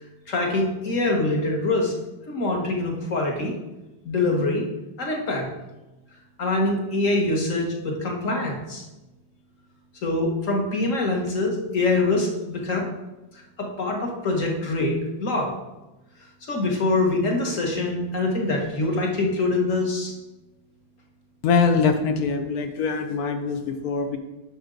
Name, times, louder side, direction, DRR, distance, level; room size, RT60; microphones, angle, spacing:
voice 1, 0.3-1.9 2.3-3.5 4.1-4.6 5.0-5.5 6.4-8.8 10.0-12.9 13.6-15.5 16.5-20.1, left 2 dB, 45° left, 0 dB, 1.7 m, -24 dB
voice 2, 21.4-24.2, left 5 dB, 60° left, 7 dB, 1.1 m, -23 dB
10.5 x 6.2 x 3.9 m, 1.0 s
omnidirectional pair, 2.1 m